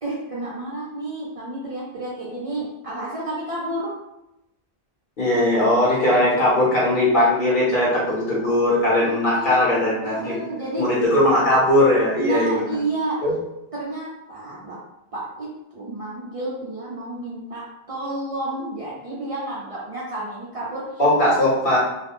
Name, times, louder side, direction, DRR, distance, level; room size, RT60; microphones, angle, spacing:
voice 1, 0.0-3.9 9.0-10.8 12.2-13.2 13.7-14.8 15.1-15.5 15.7-20.8, right 2 dB, 45° right, -7 dB, 0.5 m, -30 dB
voice 2, 5.2-10.3 10.8-12.8 13.2-13.3 21.0-21.8, left 1 dB, 55° left, -6 dB, 1.0 m, -19 dB
2.4 x 2.1 x 2.9 m, 0.89 s
omnidirectional pair, 1.0 m